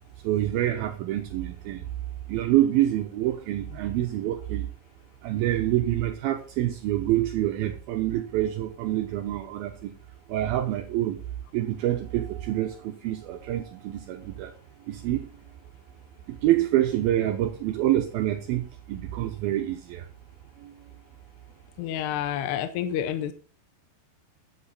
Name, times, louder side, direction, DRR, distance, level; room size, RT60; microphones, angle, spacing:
voice 1, 0.2-1.9 2.3-4.7 5.2-9.9 10.3-11.2 11.5-14.5 14.9-15.3 16.3-20.1 20.6-20.7, right 13 dB, 85° right, 5 dB, 2.2 m, -26 dB
voice 2, 21.8-23.3, left 10 dB, 80° left, 9 dB, 2.6 m, -29 dB
11.5 x 8.1 x 4.2 m, 0.37 s
omnidirectional pair, 5.2 m